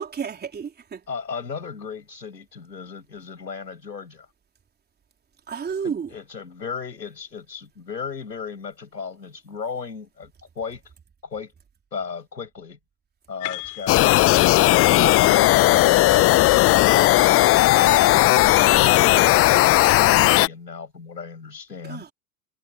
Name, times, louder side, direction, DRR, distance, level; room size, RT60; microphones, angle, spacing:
voice 1, 0.0-1.0 5.5-6.1 21.9-22.1, right 6 dB, 20° right, 4.0 m, -31 dB
voice 2, 1.1-4.3 5.8-10.8 11.2-11.5 11.9-12.8 13.3-16.4 17.5-22.0, left 5 dB, 80° left, 6.7 m, -35 dB
sound 1, 13.4-16.8, left 40 dB or more, 45° left, 5.6 m, -39 dB
sound 2, 13.9-20.5, left 17 dB, 25° left, 0.9 m, -16 dB
sound 3, 14.2-20.4, right 6 dB, 75° right, 3.6 m, -44 dB
figure-of-eight pair, 85°, 50 cm